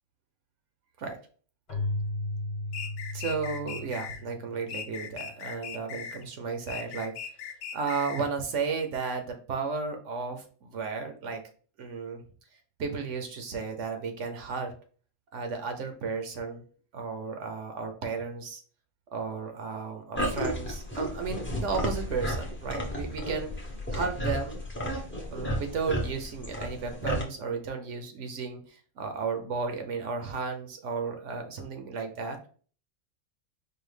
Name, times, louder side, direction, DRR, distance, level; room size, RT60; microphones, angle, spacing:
Keyboard (musical), 1.7-5.2, left 2 dB, 35° left, 1.1 m, -35 dB
sound 1, 2.7-4.2 4.7-6.2 6.7-8.3, left 7 dB, 80° left, 1.0 m, -39 dB
voice 1, 3.1-7.1 7.7-11.4 11.8-12.2 12.8-14.7 15.3-16.6 16.9-18.6 19.1-23.5 23.9-24.6 25.3-32.5, right 5 dB, 70° right, 5 dB, 1.0 m, -34 dB
sound 2, 20.1-27.2, equal, 15° left, 0.5 m, -33 dB
4.8 x 2.2 x 3.2 m, 0.42 s
omnidirectional pair, 1.4 m